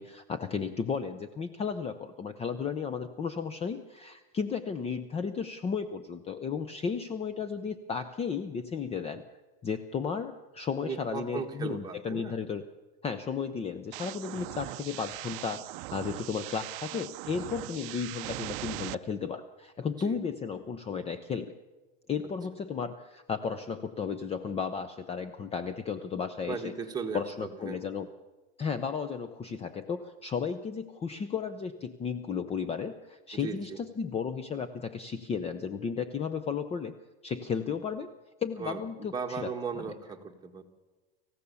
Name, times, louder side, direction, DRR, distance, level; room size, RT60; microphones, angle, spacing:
voice 1, 0.0-9.2 9.6-12.6 13.0-15.7 15.9-21.5 22.1-26.7 27.1-28.1 28.6-36.9 37.2-38.1 38.4-39.8, left 6 dB, 20° left, 11 dB, 0.7 m, -34 dB
voice 2, 10.8-12.4 20.0-20.2 26.5-27.8 33.3-33.8 38.6-40.6, right 5 dB, 15° right, 2 dB, 1.9 m, -37 dB
sound 1, 13.9-18.9, right 21 dB, 60° right, 0.6 m, -40 dB
25.5 x 15.5 x 7.0 m, 1.2 s
supercardioid pair, 140°, 30 cm